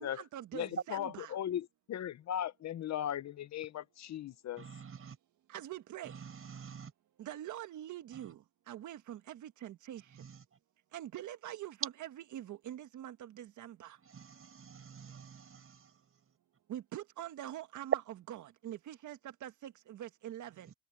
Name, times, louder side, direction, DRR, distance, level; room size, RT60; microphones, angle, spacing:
voice 1, 0.0-1.3 5.5-6.2 7.2-10.0 10.9-14.0 16.7-18.0 18.3-20.7, right 12 dB, 75° right, 1.6 m, -45 dB
voice 2, 0.5-4.7, left 10 dB, 65° left, 1.1 m, -38 dB
voice 3, 4.6-5.2 6.0-6.9 8.1-8.3 10.1-10.4 14.0-15.9, right 6 dB, 45° right, 5.6 m, -50 dB
cardioid pair, 90°, 30 cm